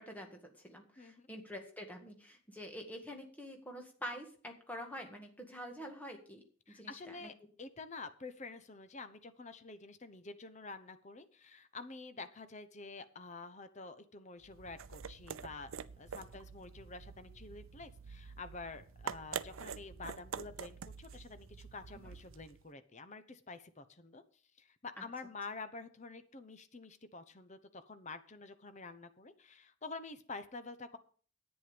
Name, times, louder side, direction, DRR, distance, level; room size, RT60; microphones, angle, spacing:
voice 1, 0.0-7.3 22.0-22.1, equal, 10° left, 3 dB, 1.8 m, -47 dB
voice 2, 1.0-1.3 6.7-24.2 24.6-31.0, left 3 dB, 35° left, 11 dB, 0.9 m, -48 dB
sound 1, 14.4-22.6, right 6 dB, 85° right, 0.5 m, -46 dB
10.5 x 9.3 x 5.2 m, 0.43 s
head